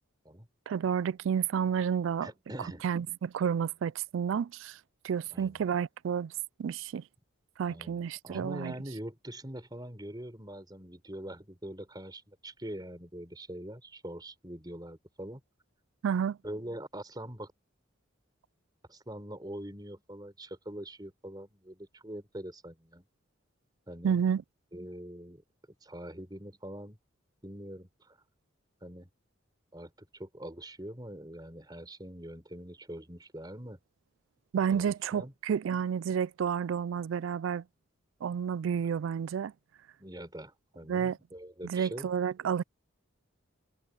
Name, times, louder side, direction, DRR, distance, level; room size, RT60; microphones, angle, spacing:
voice 1, 0.7-2.3 2.8-4.8 5.0-6.3 6.6-7.0 7.6-8.7 16.0-16.4 24.0-24.4 34.5-37.6 38.2-39.5 40.9-41.2 41.6-42.6, right 7 dB, 70° right, 0.3 m, -30 dB
voice 2, 2.2-2.8 5.3-5.6 7.7-15.4 16.4-17.5 18.9-23.0 23.9-24.2 24.7-25.4 25.8-27.0 27.4-28.2 28.8-29.1 29.7-33.8 34.7-35.3 40.0-42.1, right 1 dB, 20° right, 4.4 m, -43 dB
head